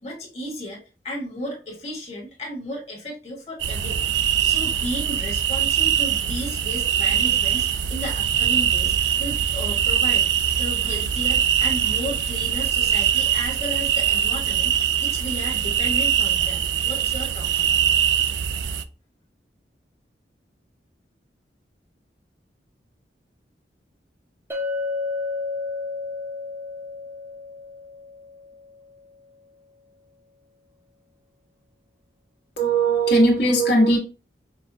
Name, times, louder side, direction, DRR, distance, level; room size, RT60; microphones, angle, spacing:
voice 1, 0.0-10.3 10.5-17.7, equal, 35° left, 1.4 m, -34 dB
sound 1, 3.6-18.8, right 9 dB, 85° right, 0.4 m, -22 dB
Chink clink, 24.5-28.7, left 3 dB, 15° right, 0.6 m, -31 dB
voice 2, 32.6-34.0, right 2 dB, 75° left, 1.5 m, -18 dB
5.4 x 2.2 x 2.7 m
head